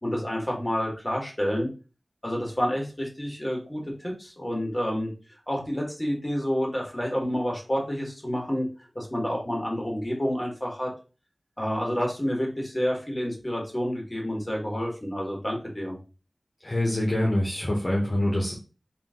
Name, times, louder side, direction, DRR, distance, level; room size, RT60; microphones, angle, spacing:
voice 1, 0.0-1.7 2.2-5.1 5.5-8.7 9.0-10.9 11.6-16.0, equal, 25° left, -1 dB, 1.9 m, -29 dB
voice 2, 16.6-18.5, left 1 dB, 50° left, -3 dB, 1.1 m, -25 dB
3.7 x 2.7 x 3.8 m, 0.33 s
wide cardioid pair, 45°, 0 cm